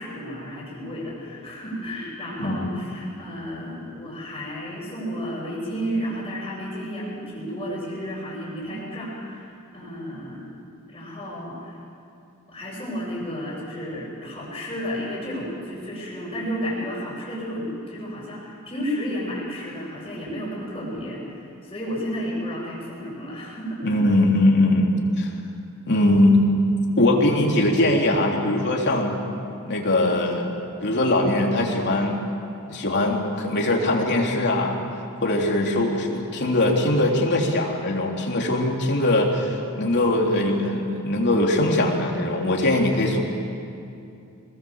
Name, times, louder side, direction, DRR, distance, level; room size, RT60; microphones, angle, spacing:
voice 1, 0.0-10.6 10.9-11.8 12.5-23.8, equal, 25° left, -10 dB, 6.8 m, -32 dB
voice 2, 23.8-24.9 25.2-25.3 25.9-26.4 27.0-29.2 29.7-30.5 30.8-32.2 32.7-34.8 35.2-43.2, left 1 dB, 50° left, -1 dB, 3.5 m, -21 dB
26.0 x 20.5 x 7.3 m, 2.6 s
head